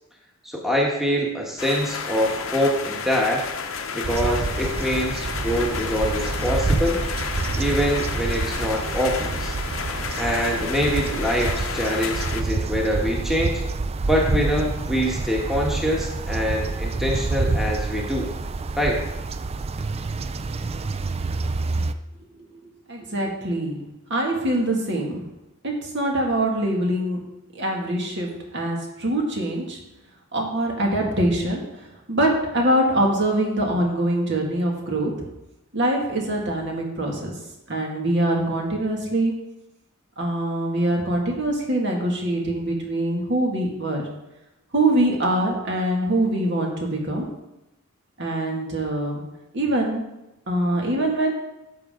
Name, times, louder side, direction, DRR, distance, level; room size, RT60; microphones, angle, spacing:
voice 1, 0.4-3.4 3.9-7.0 7.6-9.5 10.2-13.6 14.0-18.3 18.8-19.0, equal, ahead, -2 dB, 1.4 m, -24 dB
sound 1, 1.6-12.4, left 5 dB, 70° left, 0.9 m, -31 dB
sound 2, 4.0-21.9, right 3 dB, 30° right, 0.4 m, -27 dB
voice 2, 22.9-23.8 24.1-25.2 25.6-29.8 30.3-35.1 35.7-37.3 37.7-39.3 40.2-44.0 44.7-47.3 48.2-49.2 49.5-50.1 50.5-51.3, right 1 dB, 55° right, 0 dB, 2.2 m, -24 dB
11.5 x 7.3 x 3.8 m, 0.94 s
head